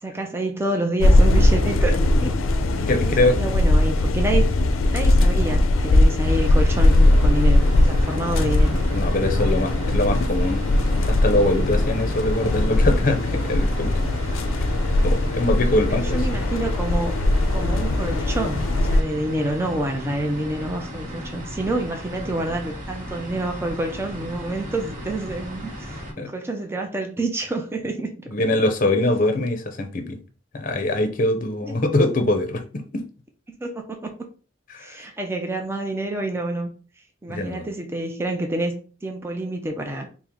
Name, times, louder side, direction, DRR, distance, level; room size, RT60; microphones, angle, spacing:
voice 1, 0.0-2.3 2.9-4.5 4.9-8.8 9.3-9.6 15.9-17.1 17.5-28.3 31.6-31.8 33.6-34.1 34.8-36.7 37.2-40.1, right 1 dB, 10° right, 0.4 m, -28 dB
sound 1, 1.0-19.0, left 1 dB, 85° left, 0.4 m, -19 dB
voice 2, 2.9-3.4 8.9-10.7 11.0-13.9 15.0-16.2 26.2-26.3 28.3-30.2 30.5-33.0 34.7-35.0 37.3-37.6, left 1 dB, 40° left, 0.6 m, -23 dB
sound 2, 6.2-26.1, equal, 40° right, 1.2 m, -35 dB
4.5 x 2.1 x 3.6 m
head